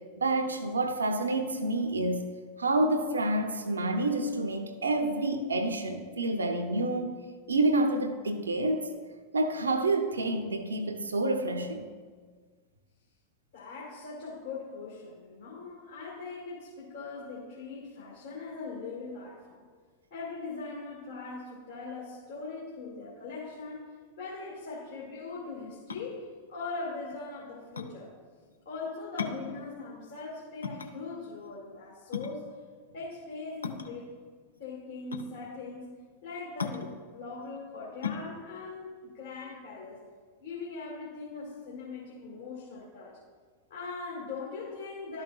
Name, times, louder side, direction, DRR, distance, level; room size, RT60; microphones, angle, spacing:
voice 1, 0.2-2.3 2.6-7.2 7.5-8.9 9.3-11.9, right 2 dB, 75° right, 7 dB, 0.7 m, -28 dB
voice 2, 13.5-19.7 20.1-23.9 24.2-28.1 28.7-32.5 32.9-34.2 34.6-35.9 36.2-40.0 40.4-43.2 43.7-45.2, left 4 dB, 60° left, -6 dB, 1.9 m, -40 dB
sound 1, 25.8-40.1, left 5 dB, 80° left, 0.5 m, -40 dB
12.5 x 5.7 x 2.3 m, 1.5 s
figure-of-eight pair, 90°, 0 cm